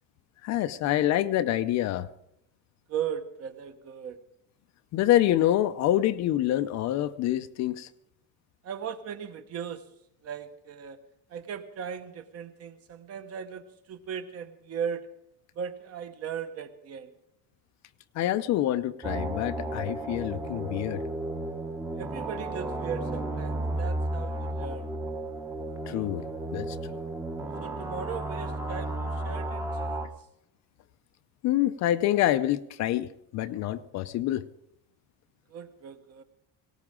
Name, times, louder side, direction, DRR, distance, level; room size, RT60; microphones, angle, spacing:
voice 1, 0.4-2.1 4.9-7.9 18.1-21.0 25.9-26.2 26.5-27.0 31.4-34.4, left 13 dB, 50° left, 12 dB, 0.6 m, -26 dB
voice 2, 2.9-4.2 8.6-9.8 10.2-11.0 11.3-15.1 15.5-17.1 22.0-24.9 27.6-30.0 35.5-36.2, right 7 dB, 45° right, 9 dB, 1.2 m, -37 dB
sound 1, 19.0-30.1, right 1 dB, 10° right, 0.9 m, -33 dB
18.5 x 18.0 x 3.7 m, 0.77 s
cardioid pair, 165°, 35 cm